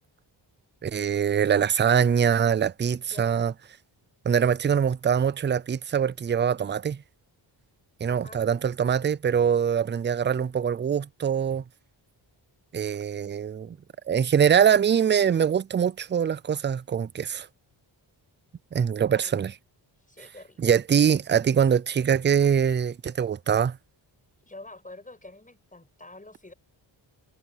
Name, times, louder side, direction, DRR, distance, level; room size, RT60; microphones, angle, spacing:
voice 1, 0.8-3.5 4.3-7.0 8.0-11.6 12.7-13.8 14.1-17.5 18.7-19.5 20.6-23.8, right 8 dB, 25° right, 0.4 m, -23 dB
voice 2, 3.1-3.5 8.1-8.4 19.1-19.5 20.1-20.7 24.4-26.5, left 2 dB, 15° left, 7.2 m, -46 dB
wide cardioid pair, 105°, 45 cm